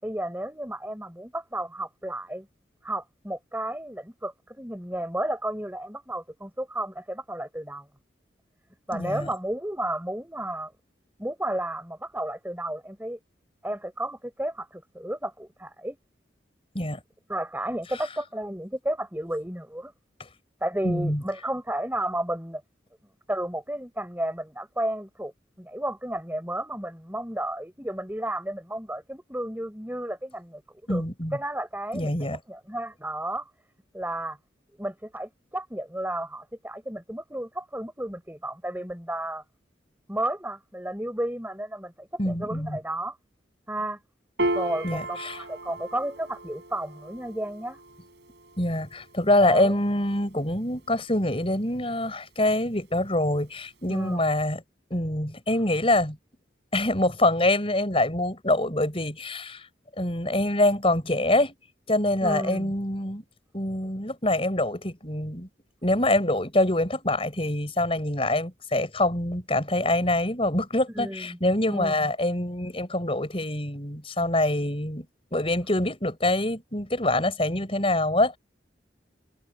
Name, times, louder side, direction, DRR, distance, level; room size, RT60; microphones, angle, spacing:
voice 1, 0.0-2.5 2.8-7.8 8.9-10.7 11.2-13.2 13.6-16.0 17.3-19.9 20.6-22.6 23.3-25.3 25.6-30.6 30.9-31.0 31.3-33.5 33.9-34.4 34.8-39.4 40.1-43.2 43.7-44.0 44.5-47.8 49.4-49.8 53.8-54.3 62.2-62.7 70.9-71.4 71.7-72.1, right 1 dB, 10° right, 6.5 m, -32 dB
voice 2, 8.9-9.3 16.7-17.0 20.8-21.2 30.9-31.4 31.9-32.4 42.2-42.8 44.8-45.4 48.6-54.6 54.9-56.2 56.7-59.7 60.0-61.5 61.9-63.2 63.5-65.5 65.8-75.1 75.3-78.4, left 1 dB, 30° left, 5.9 m, -25 dB
Piano, 44.4-51.0, right 1 dB, 70° right, 5.5 m, -36 dB
head